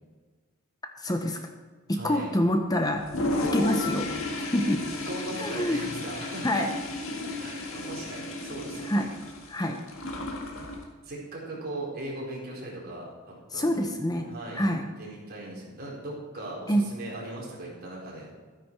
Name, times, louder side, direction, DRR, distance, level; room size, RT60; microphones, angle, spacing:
voice 1, 1.0-1.4 1.9-3.1 3.5-4.1 4.4-4.8 5.3-5.8 6.4-6.7 8.8-9.1 9.5-9.8 13.5-14.9 16.7-16.9, equal, 20° left, 5 dB, 0.8 m, -26 dB
voice 2, 1.9-2.3 5.1-6.7 7.4-9.1 11.0-13.1 13.5-13.8 14.3-14.7 15.0-18.3, right 1 dB, 45° right, -4 dB, 4.2 m, -38 dB
Toilet flush, 3.0-10.8, left 2 dB, 65° left, 1.8 m, -33 dB
12.5 x 10.0 x 4.7 m, 1.5 s
head